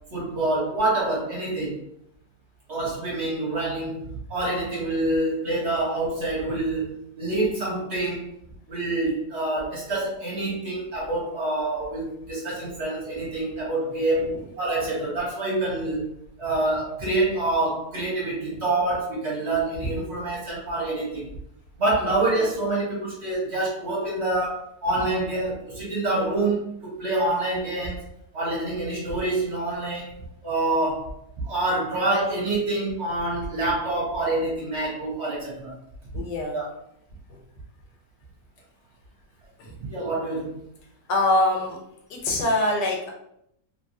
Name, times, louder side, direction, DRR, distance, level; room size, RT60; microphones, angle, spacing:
voice 1, 0.1-1.8 2.7-8.4 8.7-14.3 14.6-16.1 16.4-21.3 21.8-31.1 31.4-35.7 36.5-36.6 39.9-40.6, right 2 dB, 50° right, -4 dB, 1.0 m, -26 dB
voice 2, 36.1-36.6 37.3-37.4 39.6-39.7 41.1-41.8 42.1-43.1, left 2 dB, 90° left, 0 dB, 1.4 m, -24 dB
3.0 x 2.6 x 2.7 m, 0.74 s
omnidirectional pair, 1.8 m